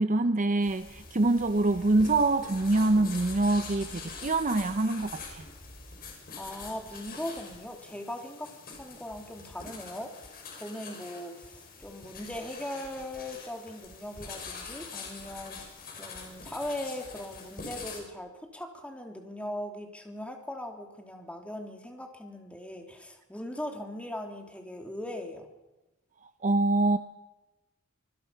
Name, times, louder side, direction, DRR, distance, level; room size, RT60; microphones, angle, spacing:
voice 1, 0.0-5.4 26.4-27.0, right 2 dB, 40° right, 10 dB, 0.7 m, -25 dB
sound 1, 0.6-18.0, left 4 dB, 45° left, 6.0 m, -44 dB
voice 2, 6.4-25.5, left 1 dB, 5° left, 3 dB, 3.0 m, -39 dB
25.5 x 20.5 x 5.7 m, 1.0 s
head